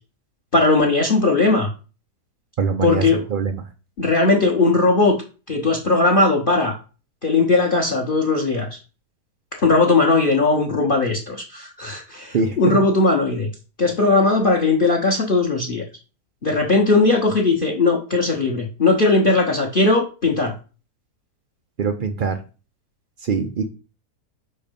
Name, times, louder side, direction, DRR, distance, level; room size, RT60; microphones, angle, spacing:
voice 1, 0.5-1.7 2.8-3.2 4.0-5.1 5.5-6.8 7.2-8.7 9.5-13.5 13.8-15.8 16.4-20.5, left 3 dB, 40° left, 2 dB, 0.9 m, -18 dB
voice 2, 2.6-3.5 12.3-12.8 21.8-22.4 23.2-23.7, right 5 dB, 85° right, 6 dB, 0.4 m, -23 dB
5.4 x 4.4 x 5.2 m, 0.34 s
omnidirectional pair, 1.7 m